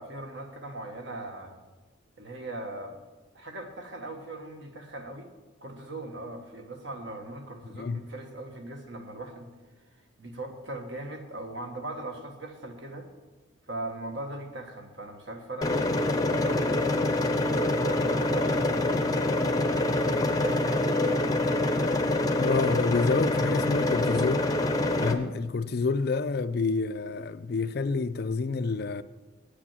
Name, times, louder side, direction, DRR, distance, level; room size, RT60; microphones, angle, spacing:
voice 1, 0.0-1.5 2.2-2.9 3.3-5.3 5.6-9.5 10.2-13.1 13.7-19.2 20.4-21.3, right 2 dB, 60° right, 1.5 m, -39 dB
voice 2, 7.7-8.0 22.4-24.5 25.0-29.0, left 4 dB, 50° left, 0.4 m, -28 dB
sound 1, 15.6-25.1, left 2 dB, 20° left, 0.6 m, -26 dB
8.6 x 8.5 x 7.4 m
head